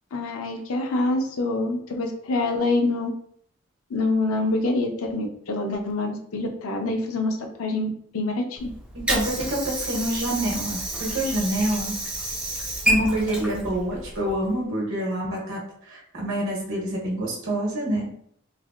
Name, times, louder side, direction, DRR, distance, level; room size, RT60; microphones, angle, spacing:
voice 1, 0.1-3.1 3.9-8.7, left 2 dB, 85° left, 4 dB, 0.5 m, -26 dB
Water / Sink (filling or washing), 8.6-14.6, right 1 dB, 5° right, 0.4 m, -29 dB
voice 2, 8.9-11.9 12.8-15.6 15.9-18.1, right 1 dB, 75° right, -3 dB, 1.0 m, -27 dB
3.3 x 2.4 x 2.3 m, 0.65 s
head